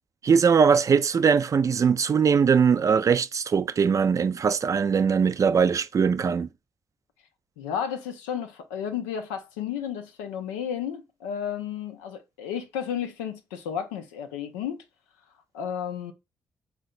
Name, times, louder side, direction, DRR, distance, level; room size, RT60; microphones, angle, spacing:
voice 1, 0.2-6.5, right 6 dB, 40° right, 0.4 m, -21 dB
voice 2, 7.6-14.8 15.5-16.1, left 8 dB, 85° left, 0.5 m, -32 dB
3.9 x 2.2 x 4.1 m
hypercardioid pair, 45°, 9 cm